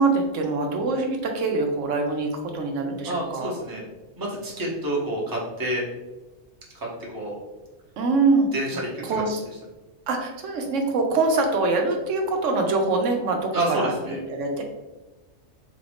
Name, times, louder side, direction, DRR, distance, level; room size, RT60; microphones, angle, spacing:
voice 1, 0.0-3.5 8.0-8.5 9.0-9.4 10.1-14.6, right 3 dB, 75° right, 2 dB, 0.9 m, -24 dB
voice 2, 3.0-3.8 4.2-5.8 6.7-7.4 8.5-9.0 13.5-14.2, right 1 dB, 20° right, -4 dB, 0.8 m, -28 dB
3.9 x 2.5 x 3.3 m, 1.1 s
omnidirectional pair, 1.3 m